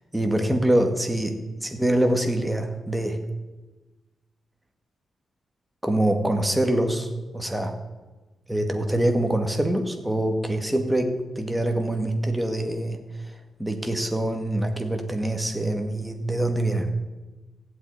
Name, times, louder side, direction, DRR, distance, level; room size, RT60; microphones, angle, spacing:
voice 1, 0.1-3.2 5.8-7.7 8.5-13.0 13.2-16.9, right 1 dB, 5° right, 5 dB, 1.9 m, -25 dB
15.5 x 8.4 x 9.8 m, 1.2 s
wide cardioid pair, 130°, 0 cm